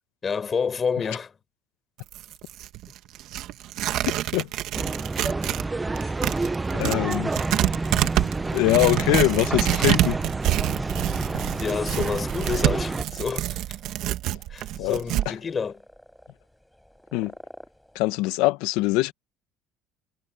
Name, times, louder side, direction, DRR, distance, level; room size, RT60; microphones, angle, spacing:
voice 1, 0.2-1.3 11.6-13.6 14.5-15.8, left 6 dB, 30° left, 4.6 m, -29 dB
Tearing, 2.0-5.7 6.0-15.3, right 14 dB, 65° right, 1.5 m, -27 dB
sound 1, 4.7-13.0, right 3 dB, 15° right, 0.7 m, -29 dB
voice 2, 6.7-7.3 8.0-8.1 8.5-10.2 14.8-15.0 15.3-15.4 17.1-17.3 17.9-19.1, left 20 dB, 90° left, 1.0 m, -23 dB
sound 2, 6.9-18.0, equal, ahead, 7.9 m, -46 dB
cardioid pair, 130°, 0 cm